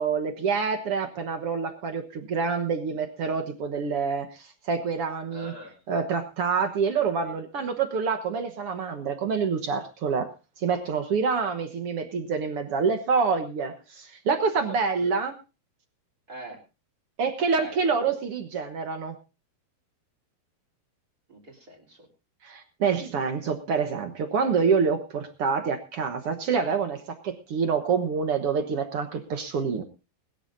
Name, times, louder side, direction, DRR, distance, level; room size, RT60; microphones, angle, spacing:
voice 1, 0.0-5.5 5.9-10.3 10.6-15.3 17.2-19.1 22.4-29.8, right 5 dB, 65° right, 7 dB, 1.4 m, -27 dB
voice 2, 5.3-5.8 7.2-7.4 14.7-14.8 15.0-15.1 16.3-16.6 17.6-17.9 21.3-22.1, equal, 25° right, 4 dB, 3.8 m, -43 dB
21.0 x 13.5 x 2.6 m, 0.30 s
omnidirectional pair, 4.3 m